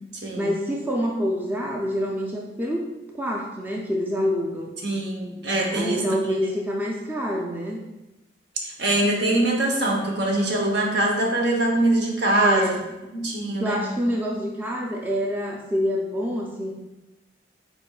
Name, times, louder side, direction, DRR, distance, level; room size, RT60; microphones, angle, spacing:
voice 1, 0.4-2.8 3.1-4.7 5.7-7.8 12.3-12.8 13.6-16.7, equal, 10° right, -2 dB, 0.4 m, -26 dB
voice 2, 4.8-6.2 8.6-12.8 13.1-13.9, right 1 dB, 65° right, 0 dB, 0.9 m, -23 dB
4.9 x 4.4 x 2.3 m, 1.0 s
head